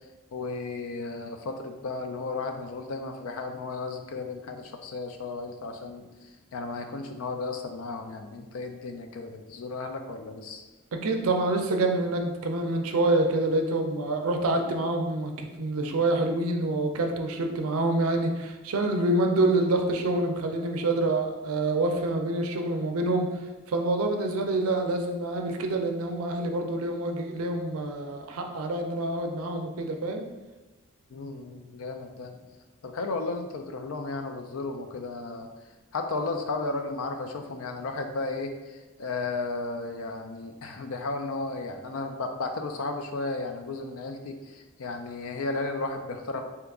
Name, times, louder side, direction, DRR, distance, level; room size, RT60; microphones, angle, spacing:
voice 1, 0.3-6.1 6.5-10.6 31.1-32.4 32.8-35.5 35.9-46.4, left 3 dB, 75° left, 5 dB, 0.4 m, -34 dB
voice 2, 10.9-23.3 23.7-30.2, right 2 dB, 75° right, 4 dB, 0.4 m, -27 dB
2.8 x 2.3 x 3.5 m, 1.1 s
head